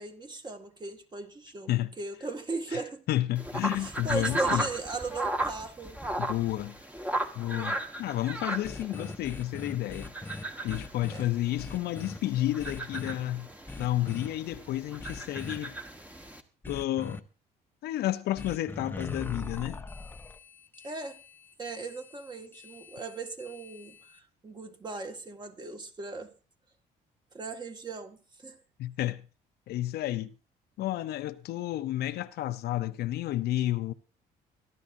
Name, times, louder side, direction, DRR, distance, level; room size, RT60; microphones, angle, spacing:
voice 1, 0.0-1.7 2.0-3.1 3.8-6.0 7.5-7.8 11.1-11.3 20.8-21.2 21.6-26.3 27.3-28.6, right 3 dB, 25° right, 1.8 m, -38 dB
voice 2, 3.1-4.6 6.2-6.8 7.3-10.1 10.6-13.5 13.8-15.7 16.7-17.2 17.8-19.8 28.8-29.3 29.7-30.3 30.8-33.9, left 14 dB, 70° left, 0.7 m, -31 dB
sound 1, 3.3-16.4, right 2 dB, 10° right, 1.3 m, -36 dB
sound 2, 8.6-11.2 11.6-12.2 12.6-13.1 13.7-14.3 15.0-15.6 16.6-17.2 18.4-24.2, left 3 dB, 10° left, 0.8 m, -42 dB
23.0 x 12.0 x 2.7 m
cardioid pair, 110°, 17 cm